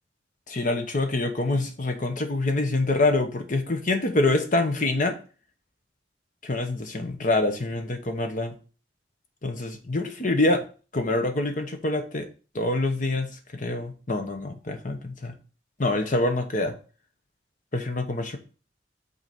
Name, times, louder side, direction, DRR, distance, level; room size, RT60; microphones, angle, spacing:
voice 1, 0.5-5.2 6.4-8.5 9.4-10.6 10.9-12.3 12.5-15.3 15.8-16.7 17.7-18.4, left 2 dB, 45° left, 6 dB, 1.0 m, -26 dB
5.8 x 4.1 x 5.8 m, 0.37 s
head